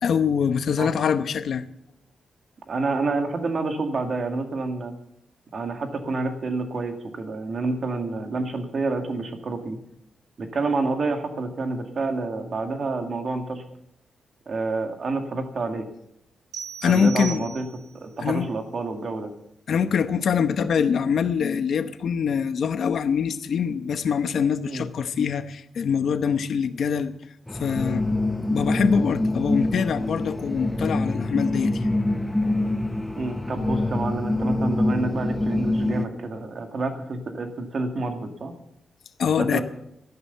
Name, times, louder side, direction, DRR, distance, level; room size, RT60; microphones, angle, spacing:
voice 1, 0.0-1.6 16.8-17.5 18.2-18.5 19.7-27.1 27.5-28.1 28.5-31.9 39.2-39.6, left 7 dB, 55° left, 0.9 m, -24 dB
voice 2, 2.7-4.9 5.5-9.8 10.4-13.6 14.5-15.9 16.9-17.7 18.0-19.3 24.6-24.9 33.2-38.5 39.4-39.6, right 3 dB, 40° right, 2.0 m, -28 dB
sound 1, 16.5-18.1, right 9 dB, 85° right, 4.1 m, -38 dB
sound 2, 27.5-36.1, left 2 dB, 5° left, 0.6 m, -25 dB
13.5 x 11.0 x 6.8 m
wide cardioid pair, 175°, 0 cm